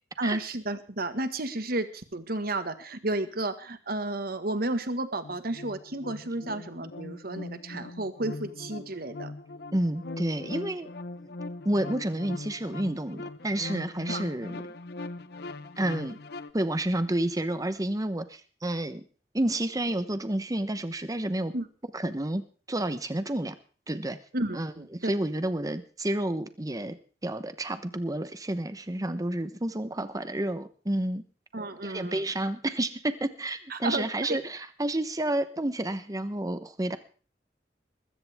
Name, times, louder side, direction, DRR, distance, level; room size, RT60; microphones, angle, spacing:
voice 1, 0.2-9.3 14.1-14.2 21.5-21.7 24.3-25.1 31.5-32.2 33.7-34.4, right 2 dB, 60° right, 10 dB, 1.6 m, -32 dB
sound 1, 5.2-16.5, left 2 dB, 65° left, 1.0 m, -40 dB
voice 2, 9.7-10.9 11.6-14.6 15.8-16.2 16.5-19.0 19.3-21.5 21.9-23.6 23.9-24.2 24.5-24.7 25.0-27.0 27.2-31.2 31.8-37.0, right 1 dB, 20° right, 11 dB, 1.0 m, -30 dB
21.0 x 15.5 x 3.6 m, 0.40 s
head